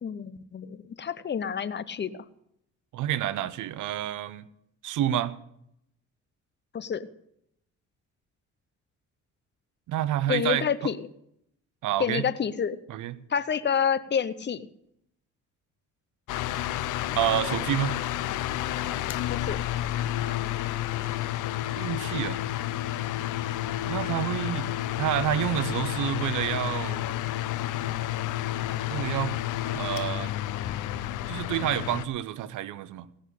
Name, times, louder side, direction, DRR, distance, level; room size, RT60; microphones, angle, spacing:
voice 1, 0.0-2.1 6.7-7.1 10.3-11.0 12.0-12.8 13.3-14.6 19.3-19.6, left 7 dB, 35° left, 14 dB, 0.9 m, -28 dB
voice 2, 2.9-4.5 4.8-5.4 9.9-10.7 11.8-12.2 12.9-13.2 17.2-17.9 21.8-22.4 23.8-27.1 28.9-29.4 29.7-30.3 31.3-33.1, right 12 dB, 80° right, 16 dB, 0.9 m, -29 dB
sound 1, 16.3-32.1, left 13 dB, 85° left, 0.7 m, -30 dB
16.5 x 6.4 x 8.3 m, 0.76 s
cardioid pair, 90°, 30 cm